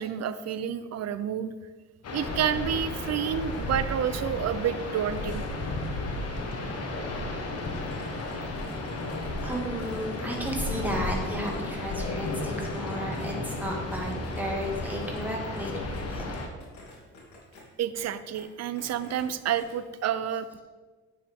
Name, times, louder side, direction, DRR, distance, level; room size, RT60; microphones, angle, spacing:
voice 1, 0.0-1.5 2.1-5.4 17.8-20.5, right 9 dB, 60° right, 13 dB, 0.6 m, -29 dB
sound 1, 2.0-16.5, left 2 dB, 55° left, 1.5 m, -33 dB
sound 2, 7.8-11.2 11.4-13.6 13.9-16.0 16.3-17.6 17.9-18.0 18.3-18.4 18.8-19.3 19.5-19.7, left 3 dB, 70° left, 2.7 m, -51 dB
voice 2, 9.4-16.4, equal, 5° right, -2 dB, 2.1 m, -33 dB
9.2 x 7.2 x 3.7 m, 1.4 s
cardioid pair, 90°, 30 cm